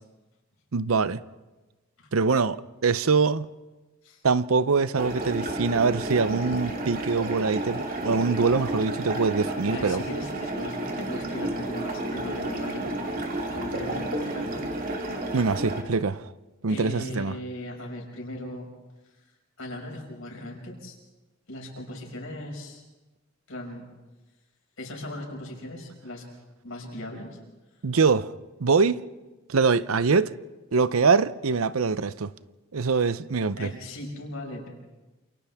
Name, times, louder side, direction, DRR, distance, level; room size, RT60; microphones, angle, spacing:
voice 1, 0.7-1.2 2.1-3.5 4.2-10.0 15.3-16.3 16.6-17.3 27.8-28.3 28.6-29.0 29.5-30.3 30.7-32.3 32.7-33.7, right 4 dB, 85° right, 0.7 m, -23 dB
sound 1, 5.0-15.8, right 1 dB, 45° right, 2.9 m, -31 dB
voice 2, 9.7-13.0 13.5-14.6 16.7-18.7 19.6-21.0 21.5-22.8 23.5-23.9 24.8-26.2 26.6-27.4 33.6-34.7, left 1 dB, 75° left, 6.0 m, -38 dB
29.0 x 28.0 x 3.6 m
head